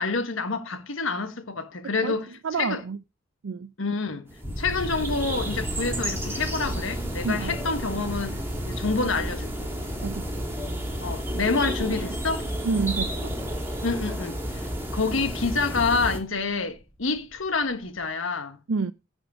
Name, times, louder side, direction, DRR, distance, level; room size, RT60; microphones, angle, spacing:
voice 1, 0.0-2.3 2.6-2.8 3.8-4.2 4.6-8.4 8.6-9.7 11.0-12.5 13.8-18.6, left 4 dB, 80° left, 1.4 m, -28 dB
voice 2, 2.4-3.0 3.4-3.7 7.2-7.6 10.0-10.3 12.6-13.4 18.7-18.9, right 4 dB, 80° right, 0.5 m, -28 dB
sound 1, 4.3-16.2, right 1 dB, 10° right, 2.6 m, -32 dB
sound 2, 4.4-18.1, equal, 20° left, 2.1 m, -38 dB
10.5 x 5.1 x 7.1 m
head